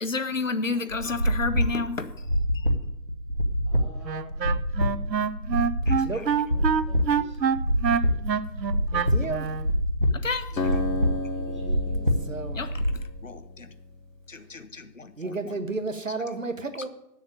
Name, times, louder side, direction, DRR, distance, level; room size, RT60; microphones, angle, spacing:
voice 1, 0.0-2.3 2.5-2.7 5.9-6.2 10.1-10.7 12.5-13.7 14.3-15.5, left 4 dB, 50° left, 13 dB, 0.9 m, -32 dB
sound 1, 0.9-12.9, equal, 35° right, 0.8 m, -26 dB
voice 2, 3.7-4.3 6.4-7.4 10.5-10.8 11.1-12.1, left 1 dB, 20° right, -1 dB, 1.3 m, -48 dB
Wind instrument woodwind instrument, 4.0-9.7, right 7 dB, 85° right, 0.7 m, -26 dB
voice 3, 6.0-6.4 8.9-9.5 12.3-12.6 15.2-16.9, right 3 dB, 50° right, 9 dB, 1.1 m, -32 dB
Acoustic guitar, 10.6-14.1, left 3 dB, 90° left, 1.2 m, -33 dB
8.6 x 7.2 x 8.7 m, 0.85 s
figure-of-eight pair, 175°, 49 cm